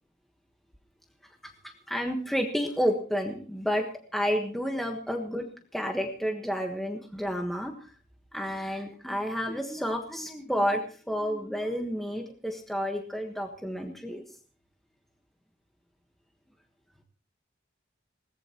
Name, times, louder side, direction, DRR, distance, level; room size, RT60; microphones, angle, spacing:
voice 1, 1.4-3.9 4.1-5.5 5.7-7.9 8.3-14.2, equal, ahead, 2 dB, 1.4 m, -30 dB
21.5 x 18.5 x 3.0 m, 0.40 s
head